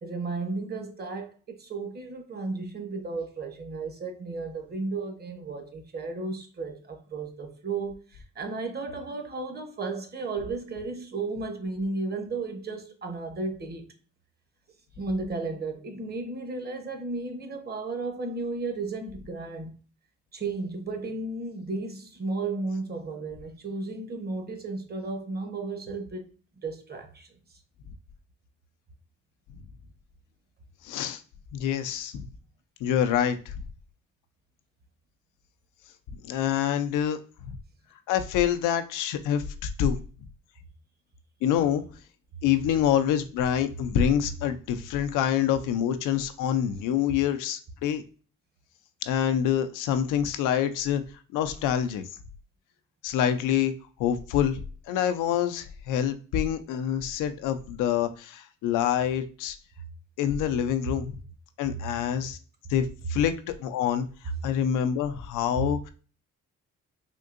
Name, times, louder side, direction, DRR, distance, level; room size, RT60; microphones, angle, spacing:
voice 1, 0.0-13.9 15.0-19.7 20.3-26.3 26.6-27.3, right 3 dB, 35° right, 0.8 m, -34 dB
voice 2, 30.8-31.2 31.5-32.3 32.8-33.5 36.2-37.2 37.5-37.6 38.1-40.0 41.4-41.8 42.4-48.0 49.1-51.0 51.3-52.0 53.0-53.7 54.0-54.6 54.9-59.6 60.2-61.1 61.6-62.4 62.7-63.3 63.6-64.1 64.4-65.9, left 9 dB, 90° left, 0.5 m, -26 dB
3.6 x 2.6 x 2.4 m
cardioid pair, 90°, 30 cm